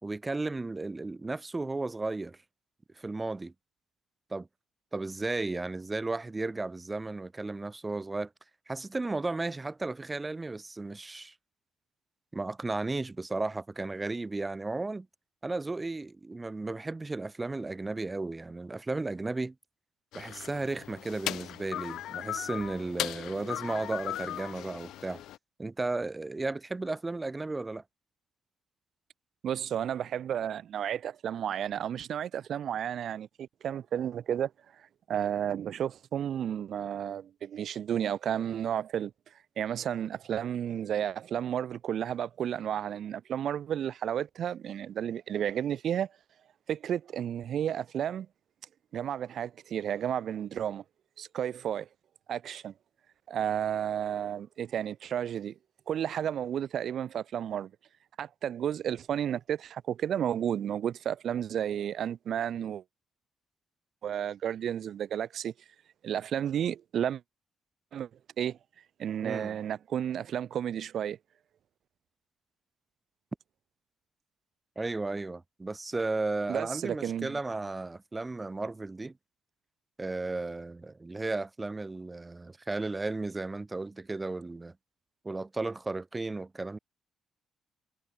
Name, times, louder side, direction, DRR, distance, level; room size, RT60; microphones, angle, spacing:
voice 1, 0.0-2.4 3.0-3.5 4.3-4.5 4.9-8.3 8.7-11.3 12.3-15.1 15.4-19.5 20.1-25.2 25.6-27.8 69.2-69.6 74.7-79.1 80.0-84.7 85.2-86.8, right 3 dB, 20° right, 1.5 m, -34 dB
sound 1, 20.1-25.4, left 13 dB, 80° left, 0.9 m, -38 dB
voice 2, 29.4-34.5 35.1-39.1 39.6-46.1 46.7-48.3 48.9-50.8 51.2-51.9 52.3-52.7 53.3-55.5 55.9-57.7 58.2-62.8 64.0-65.5 66.0-67.2 67.9-68.1 68.4-68.6 69.0-71.2 76.5-77.4, right 9 dB, 65° right, 1.2 m, -32 dB
cardioid pair, 90°, 0 cm